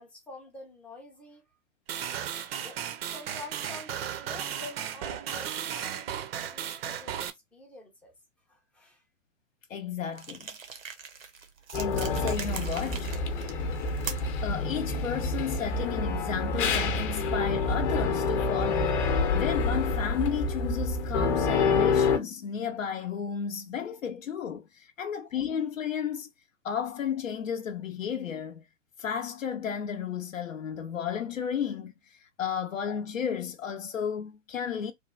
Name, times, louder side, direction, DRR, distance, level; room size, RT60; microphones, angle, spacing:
voice 1, 0.0-1.4 2.5-2.8 3.1-8.1 8.5-9.0 10.6-10.7, left 2 dB, 5° left, 0.4 m, -48 dB
sound 1, 1.9-7.3, right 9 dB, 50° right, 0.5 m, -35 dB
voice 2, 9.7-10.5 11.8-13.1 14.0-19.0 19.3-26.3 26.6-28.6 29.0-31.9 32.4-34.9, left 8 dB, 85° left, 0.6 m, -33 dB
sound 2, 10.1-14.4, right 5 dB, 85° right, 0.9 m, -41 dB
sound 3, 11.7-22.2, left 4 dB, 40° left, 0.7 m, -27 dB
3.2 x 2.2 x 2.3 m
figure-of-eight pair, 115°, 39 cm